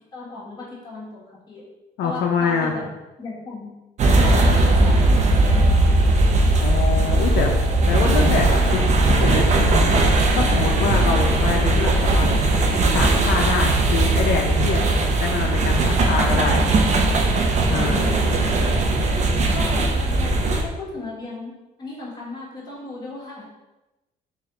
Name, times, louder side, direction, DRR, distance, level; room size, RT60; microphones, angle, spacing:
voice 1, 0.1-1.6 2.0-2.8 3.2-3.7 4.2-6.5 7.1-7.5 8.5-8.8 17.6-18.4 19.5-21.5 21.8-23.5, left 3 dB, 25° left, -6 dB, 1.5 m, -36 dB
voice 2, 2.0-2.8 6.6-7.5 7.9-8.8 9.1-16.6 17.7-18.3, left 5 dB, 75° left, 1 dB, 0.5 m, -25 dB
sound 1, 4.0-20.6, right 2 dB, 45° right, 0.5 m, -18 dB
3.3 x 2.9 x 3.6 m, 1.0 s
cardioid pair, 110°, 17 cm